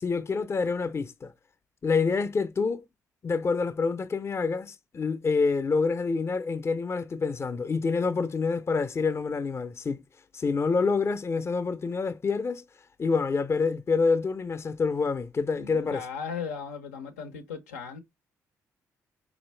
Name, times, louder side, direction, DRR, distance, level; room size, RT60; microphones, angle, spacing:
voice 1, 0.0-1.3 1.8-2.8 3.2-10.0 10.3-12.6 13.0-16.0, left 4 dB, 35° left, 0.6 m, -27 dB
voice 2, 15.6-18.0, left 6 dB, 90° left, 0.6 m, -37 dB
4.2 x 2.5 x 3.2 m
hypercardioid pair, 45°, 8 cm